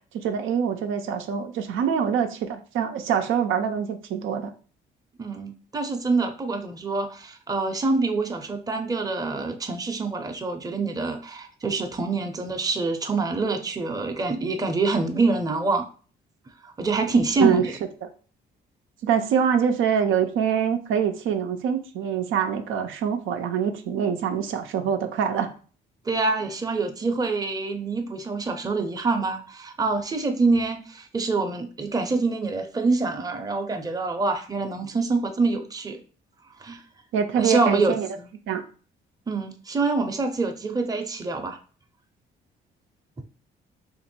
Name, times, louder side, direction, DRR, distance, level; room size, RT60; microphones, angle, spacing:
voice 1, 0.1-4.5 17.4-17.6 18.0-18.1 19.0-25.5 37.1-38.1 38.5-38.6, right 7 dB, 85° right, 6 dB, 0.6 m, -24 dB
voice 2, 5.2-15.8 16.6-17.7 26.1-36.0 36.6-36.8 37.4-38.3 39.3-41.6 43.2-43.3, right 3 dB, 20° right, 5 dB, 0.6 m, -26 dB
2.9 x 2.6 x 4.3 m, 0.39 s
cardioid pair, 90°, 20 cm